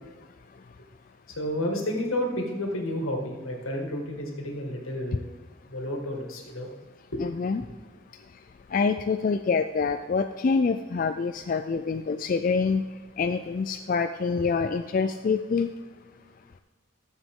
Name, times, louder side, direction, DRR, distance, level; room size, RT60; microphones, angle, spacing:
voice 1, 1.4-5.3 5.7-6.7 7.1-7.2 7.6-7.7, left 1 dB, 80° left, 2 dB, 1.9 m, -31 dB
voice 2, 7.2-7.6 8.7-12.8 13.2-15.7, left 5 dB, 40° left, 7 dB, 0.3 m, -26 dB
13.5 x 7.4 x 3.7 m, 1.4 s
head